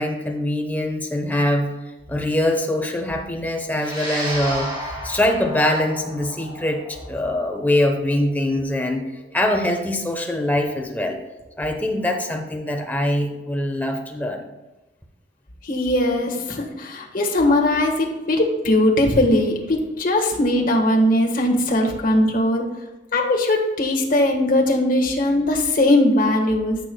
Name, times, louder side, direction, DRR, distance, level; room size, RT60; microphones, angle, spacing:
voice 1, 0.0-1.7 2.1-9.0 9.3-11.2 11.6-14.5, left 1 dB, 10° left, 3 dB, 0.9 m, -23 dB
sound 1, 3.7-12.3, equal, 25° right, 2.7 m, -35 dB
voice 2, 15.6-22.6 23.1-26.8, left 1 dB, 50° left, 1 dB, 1.5 m, -19 dB
13.0 x 6.8 x 2.3 m, 1.1 s
head